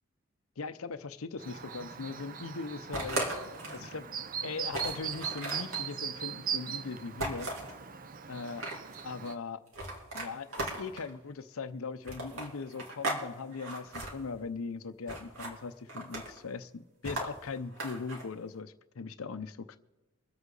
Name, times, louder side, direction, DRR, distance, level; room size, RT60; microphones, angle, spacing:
voice 1, 0.6-3.3 3.7-4.0 4.4-7.5 8.3-8.6 9.0-9.6 10.1-19.8, left 4 dB, 80° left, 12 dB, 0.6 m, -40 dB
Chirp tweet, 1.4-9.4, right 8 dB, 40° right, 0.6 m, -40 dB
sound 1, 2.9-3.9 4.3-4.4 4.7-5.8 7.2-7.7 8.3-9.0 9.7-11.1 12.0-13.2 13.5-14.1 15.1-15.5 15.9-16.4 17.0-18.2, right 2 dB, 75° right, 3.0 m, -37 dB
24.0 x 8.1 x 3.9 m, 1.1 s
head